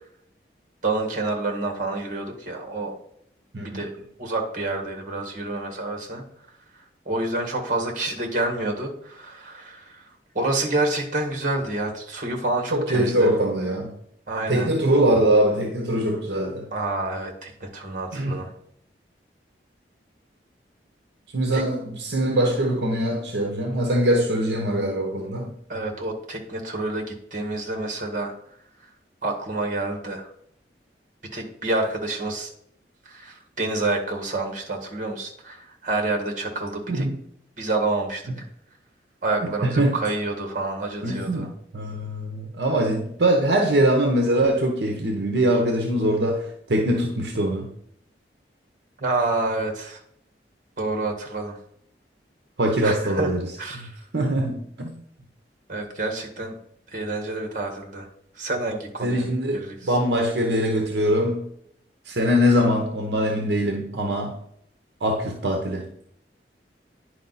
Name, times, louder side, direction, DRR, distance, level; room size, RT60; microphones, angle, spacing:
voice 1, 0.8-2.9 3.7-3.9 4.2-6.2 7.0-10.0 10.3-13.3 14.3-14.7 16.7-18.5 21.5-21.6 25.7-28.3 29.2-30.3 31.3-32.5 33.0-37.1 37.6-38.2 39.2-41.5 49.0-50.0 50.8-51.6 52.8-53.3 53.6-54.0 55.7-56.6 56.9-58.1 58.3-59.3 59.5-59.9, right 2 dB, 45° right, 1.6 m, -28 dB
voice 2, 12.7-13.9 14.5-16.7 18.1-18.5 21.3-25.5 36.9-37.2 39.6-40.0 41.0-47.7 52.6-53.4 53.8-53.9 54.1-55.0 59.0-61.5 62.1-64.4 65.0-65.9, right 1 dB, 70° right, 0.9 m, -22 dB
9.9 x 4.8 x 4.1 m
head